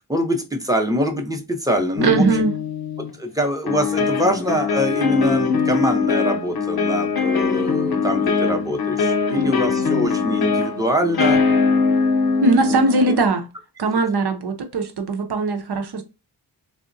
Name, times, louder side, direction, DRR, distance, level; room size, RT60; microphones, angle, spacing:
voice 1, 0.1-2.3 3.0-11.4 12.5-12.8, equal, 10° right, 0.7 m, -24 dB
sound 1, 2.0-3.1 3.7-13.3, left 5 dB, 60° left, 0.6 m, -21 dB
voice 2, 2.0-2.5 12.4-13.5 13.8-16.0, right 3 dB, 70° right, 0.7 m, -20 dB
3.6 x 2.1 x 2.5 m
wide cardioid pair, 90°, 41 cm